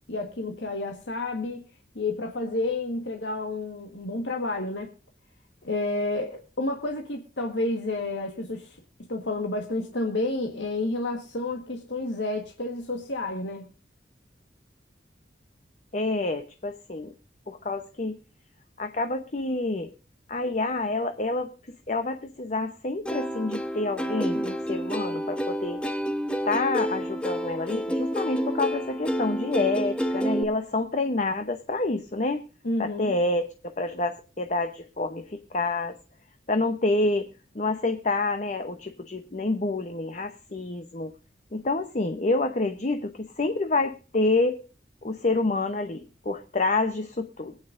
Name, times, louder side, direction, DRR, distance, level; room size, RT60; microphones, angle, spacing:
voice 1, 0.1-1.6 1.9-4.9 5.6-8.8 9.1-13.7 32.6-33.2, left 2 dB, 90° left, 2 dB, 1.5 m, -30 dB
voice 2, 15.9-17.1 17.5-18.2 18.8-19.9 20.3-21.5 21.9-25.8 26.5-32.4 32.8-36.0 36.5-37.3 37.5-41.1 41.5-44.6 45.0-47.6, left 2 dB, 40° left, 7 dB, 0.8 m, -28 dB
Plucked string instrument, 23.1-30.4, equal, 5° left, 0.9 m, -29 dB
23.5 x 8.9 x 2.6 m, 0.35 s
head